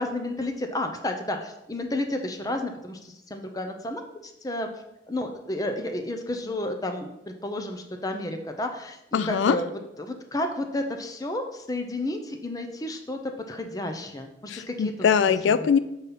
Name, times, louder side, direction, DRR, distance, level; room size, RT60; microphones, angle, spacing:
voice 1, 0.0-4.7 5.1-9.7 10.0-13.2 13.5-15.1 15.6-15.7, left 1 dB, 20° left, 5 dB, 0.6 m, -31 dB
voice 2, 9.1-9.6 14.5-15.8, left 7 dB, 75° left, 14 dB, 0.3 m, -22 dB
7.3 x 4.0 x 5.7 m, 0.88 s
head